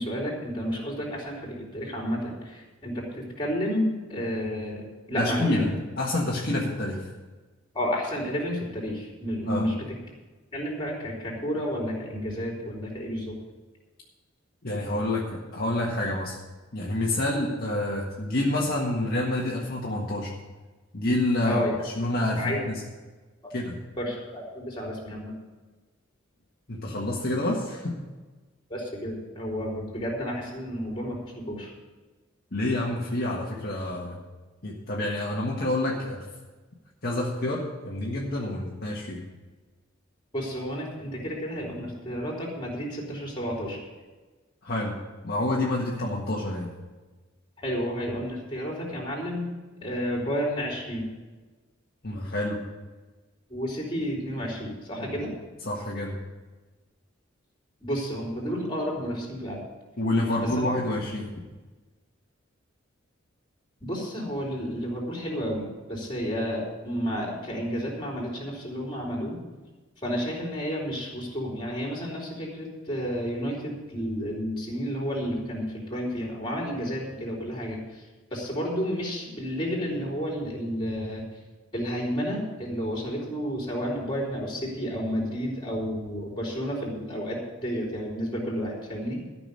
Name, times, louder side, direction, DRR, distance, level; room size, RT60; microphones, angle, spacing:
voice 1, 0.0-5.7 7.7-9.8 10.5-13.4 21.5-21.9 22.4-22.6 23.4-23.5 24.0-25.4 28.7-31.7 40.3-43.8 47.6-49.4 49.8-51.1 53.5-55.3 57.8-59.6 60.4-60.7 63.8-69.4 70.0-78.0 78.3-81.3 81.7-89.2, equal, 25° left, -2 dB, 3.8 m, -31 dB
voice 2, 5.2-7.1 9.5-9.7 14.6-16.4 16.7-20.3 20.9-22.8 23.5-23.8 26.7-28.0 32.5-34.2 34.6-36.3 37.0-39.2 44.6-44.9 45.2-46.7 52.0-52.6 55.0-55.2 55.6-56.2 60.0-61.3, left 1 dB, 50° left, -4 dB, 1.6 m, -28 dB
13.0 x 6.1 x 8.5 m, 1.3 s
head